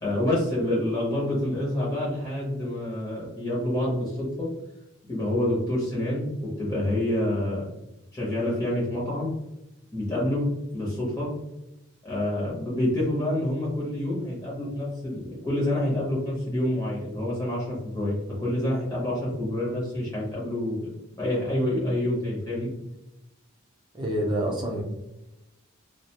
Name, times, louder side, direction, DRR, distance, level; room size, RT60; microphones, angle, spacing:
voice 1, 0.0-4.5 5.1-6.3 6.6-7.7 8.1-9.3 9.9-10.4 10.7-11.3 12.0-20.9 21.2-22.7, left 1 dB, 15° left, -6 dB, 0.7 m, -27 dB
voice 2, 23.9-24.8, right 1 dB, 20° right, -1 dB, 0.5 m, -27 dB
2.3 x 2.1 x 2.9 m, 0.92 s
head